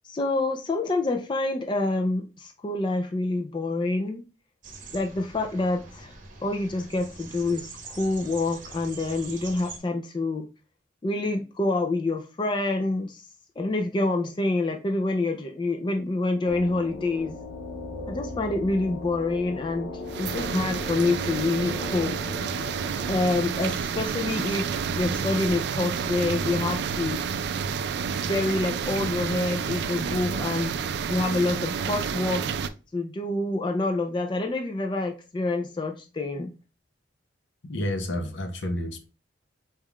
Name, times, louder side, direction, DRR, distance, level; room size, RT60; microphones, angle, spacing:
voice 1, 0.0-4.2 4.9-6.1 6.4-10.5 11.0-13.2 13.6-17.3 18.1-22.2 23.1-27.2 28.3-32.4 32.9-36.5, left 2 dB, 25° left, 0.4 m, -27 dB
sound 1, 4.6-9.8, right 4 dB, 45° right, 0.9 m, -44 dB
sound 2, 16.5-23.1, left 2 dB, 45° left, 1.0 m, -37 dB
sound 3, 20.1-32.7, right 6 dB, 60° right, 0.3 m, -30 dB
voice 2, 37.7-39.1, left 1 dB, 75° left, 0.8 m, -30 dB
4.2 x 2.4 x 3.5 m
head